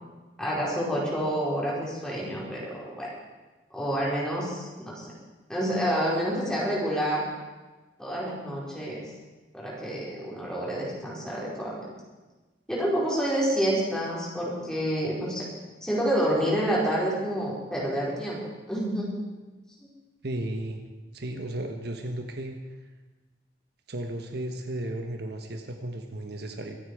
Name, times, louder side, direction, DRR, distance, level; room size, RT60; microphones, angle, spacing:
voice 1, 0.4-3.1 3.7-5.1 5.5-7.3 8.0-9.0 9.5-11.8 12.7-15.4 15.8-18.4 18.7-19.1, equal, 5° left, -6 dB, 4.8 m, -28 dB
voice 2, 20.2-20.8 21.1-22.6 23.9-26.8, right 1 dB, 65° right, 4 dB, 1.3 m, -34 dB
24.0 x 9.1 x 4.9 m, 1.2 s
head